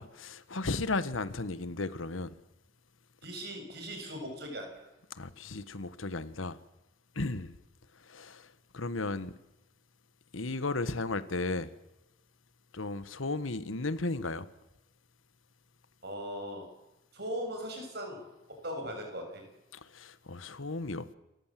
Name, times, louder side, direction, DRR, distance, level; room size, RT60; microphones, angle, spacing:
voice 1, 0.0-2.4 5.1-6.6 7.1-7.6 8.0-9.4 10.3-11.7 12.7-14.5 19.7-21.1, left 3 dB, 85° left, 1.3 m, -35 dB
voice 2, 3.2-4.9 16.0-16.7 17.1-18.3 18.6-19.4, equal, 50° right, 6.8 m, -39 dB
28.0 x 15.0 x 7.6 m
head